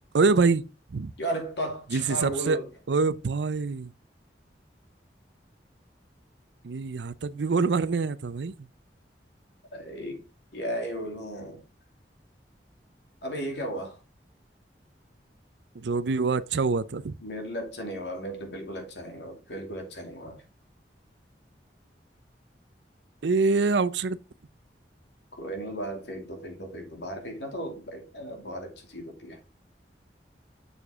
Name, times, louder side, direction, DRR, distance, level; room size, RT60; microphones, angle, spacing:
voice 1, 0.1-0.6 0.9-1.1 1.9-2.6 2.9-3.9 6.6-8.5 15.8-17.1 23.2-24.2, right 4 dB, 85° right, 0.5 m, -25 dB
voice 2, 1.2-2.7 9.7-10.2 10.5-11.6 13.2-14.0 17.2-20.4 25.3-29.4, right 1 dB, 85° left, 2.5 m, -35 dB
7.1 x 6.7 x 3.6 m
head